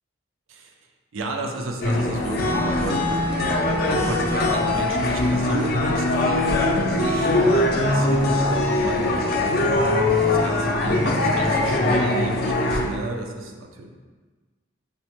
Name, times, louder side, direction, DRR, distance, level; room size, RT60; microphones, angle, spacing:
voice 1, 1.1-9.7 10.2-13.9, right 2 dB, 80° right, 3 dB, 0.5 m, -31 dB
sound 1, 1.8-12.9, left 2 dB, 45° left, 0.4 m, -21 dB
5.2 x 2.1 x 2.9 m, 1.4 s
head